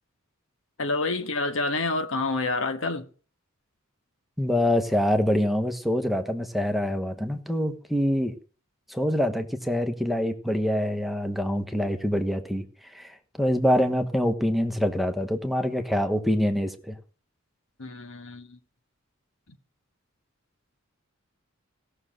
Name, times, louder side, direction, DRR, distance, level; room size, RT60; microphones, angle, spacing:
voice 1, 0.8-3.1 17.8-18.6, left 3 dB, 70° left, 1.5 m, -28 dB
voice 2, 4.4-8.3 8.9-12.6 12.9-17.0, equal, ahead, 1.2 m, -25 dB
17.0 x 6.6 x 7.5 m
head